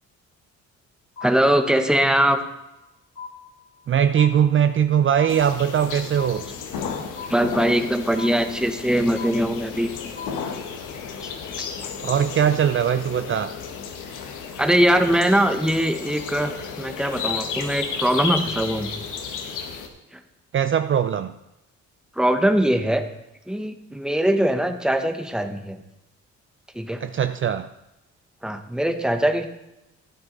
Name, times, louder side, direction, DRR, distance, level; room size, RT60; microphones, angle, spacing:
sound 1, 1.2-1.9 2.2-2.9 3.2-3.9 4.2-4.9 5.2-5.9 6.2-6.9 7.2-7.9 8.2-8.9 9.2-9.9 10.2-10.9, left 5 dB, 55° left, 3.3 m, -40 dB
voice 1, 1.2-2.4 7.3-9.9 11.2-11.3 11.6-11.7 14.6-18.9 20.1-20.2 22.2-23.0 23.5-25.8 26.7-27.0 28.4-29.5, right 1 dB, ahead, 7 dB, 1.1 m, -21 dB
voice 2, 3.9-6.5 12.0-13.6 20.5-21.3 27.0-27.7, right 9 dB, 45° right, 10 dB, 0.5 m, -21 dB
sound 2, 5.3-19.9, left 6 dB, 90° left, 1.5 m, -33 dB
12.5 x 9.7 x 4.0 m, 0.92 s
cardioid pair, 90°, 30 cm